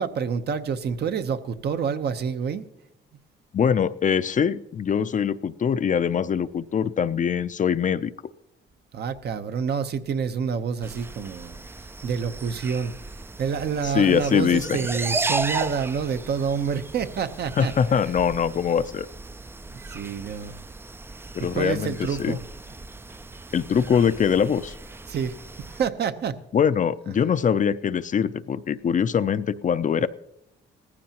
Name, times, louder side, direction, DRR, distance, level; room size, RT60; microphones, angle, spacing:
voice 1, 0.0-2.6 8.9-12.9 13.4-17.7 19.9-20.6 21.4-22.4 23.7-23.8 25.1-26.4, right 6 dB, 55° right, 9 dB, 0.8 m, -28 dB
voice 2, 3.5-8.1 13.8-14.8 17.6-19.1 21.3-22.4 23.5-24.7 26.5-30.1, left 7 dB, 40° left, 13 dB, 0.5 m, -23 dB
sound 1, 10.8-25.9, right 3 dB, 10° right, 0.4 m, -36 dB
18.0 x 14.5 x 2.9 m, 0.83 s
cardioid pair, 90°, 20 cm